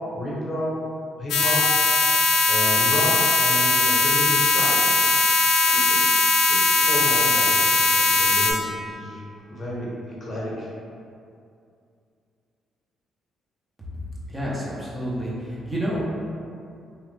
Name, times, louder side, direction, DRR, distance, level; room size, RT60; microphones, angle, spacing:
voice 1, 0.1-0.7 1.2-1.7 2.5-5.0 5.6-6.0 6.5-9.2 9.5-10.7, equal, 40° left, -6 dB, 0.9 m, -31 dB
sound 1, 1.3-8.5, left 3 dB, 85° left, 0.4 m, -19 dB
voice 2, 14.3-16.1, equal, 15° right, -7 dB, 0.8 m, -29 dB
3.0 x 2.4 x 3.3 m, 2.5 s
cardioid pair, 90°, 0 cm